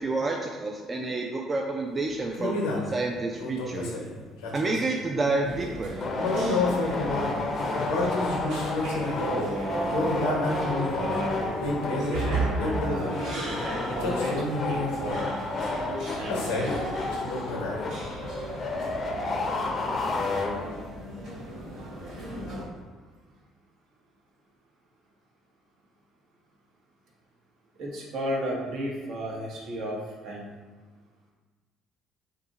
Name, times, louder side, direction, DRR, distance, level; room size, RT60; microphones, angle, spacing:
voice 1, 0.0-2.6 2.9-3.9 4.5-5.9, right 2 dB, 30° right, 1 dB, 0.3 m, -29 dB
sound 1, 2.3-2.9 3.4-5.0 6.2-7.3 7.8-9.4 9.9-11.1 11.6-12.3 12.6-13.3 13.9-15.3 16.3-16.8 17.1-17.8, left 2 dB, 90° left, 0.7 m, -30 dB
sound 2, 5.4-22.6, right 1 dB, 85° right, 1.1 m, -36 dB
sound 3, 6.0-21.0, left 2 dB, 40° left, 0.5 m, -32 dB
voice 2, 9.2-13.2 13.6-15.3 15.9-16.8 27.8-30.0 30.2-30.5, right 1 dB, 65° right, -2 dB, 0.8 m, -34 dB
2.7 x 2.4 x 3.9 m, 1.3 s
supercardioid pair, 70°, 0 cm